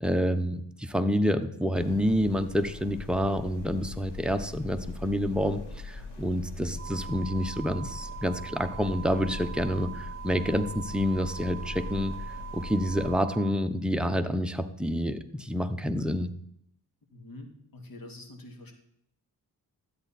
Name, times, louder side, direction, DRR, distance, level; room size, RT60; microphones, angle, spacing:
voice 1, 0.0-12.2 12.5-16.3, equal, ahead, 7 dB, 0.9 m, -28 dB
sound 1, 1.7-13.1, left 2 dB, 80° left, 2.4 m, -41 dB
sound 2, 6.8-13.5, right 9 dB, 30° right, 2.5 m, -42 dB
voice 2, 17.1-18.7, left 2 dB, 55° left, 4 dB, 2.3 m, -46 dB
13.0 x 8.2 x 4.3 m, 0.73 s
cardioid pair, 55°, 41 cm